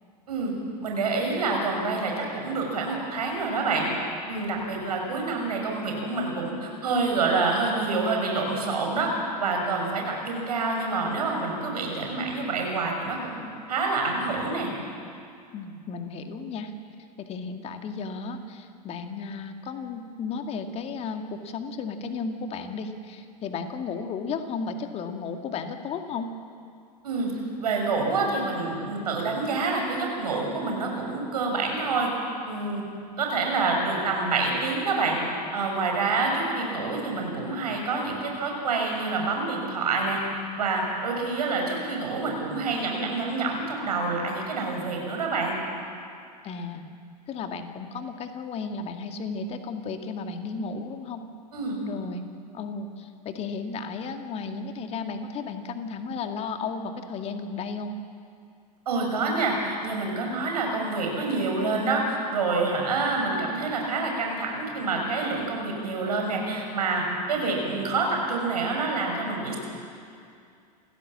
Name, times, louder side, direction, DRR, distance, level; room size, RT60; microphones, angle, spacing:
voice 1, 0.8-3.9 4.3-9.1 9.4-13.4 13.7-14.7 27.0-27.3 27.6-32.1 32.4-32.8 33.2-35.2 35.5-40.2 40.5-45.6 51.5-51.8 58.9-69.6, right 3 dB, 65° right, 1 dB, 6.2 m, -27 dB
voice 2, 15.5-16.7 17.2-26.3 46.4-46.8 47.3-51.2 51.8-52.2 52.5-57.9, left 4 dB, 30° left, 6 dB, 2.0 m, -34 dB
28.5 x 16.0 x 7.4 m, 2.4 s
figure-of-eight pair, 95°, 21 cm